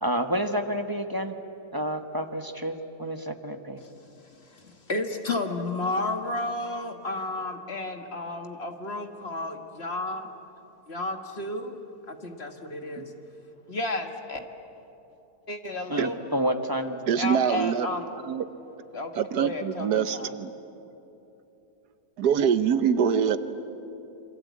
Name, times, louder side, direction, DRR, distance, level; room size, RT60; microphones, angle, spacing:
voice 1, 0.0-1.3 1.7-3.8 13.0-13.1 15.9-17.0, equal, 15° right, 6 dB, 1.0 m, -29 dB
voice 2, 4.3-10.3 10.9-13.1 13.7-14.4 15.5-16.2 17.2-18.0 18.9-19.1 19.4-20.3, left 2 dB, 40° left, 5 dB, 1.8 m, -32 dB
voice 3, 17.1-17.9 18.2-18.4 19.1-20.5 22.2-23.4, right 7 dB, 80° right, 11 dB, 1.5 m, -24 dB
27.5 x 24.5 x 8.4 m, 2.9 s
omnidirectional pair, 1.7 m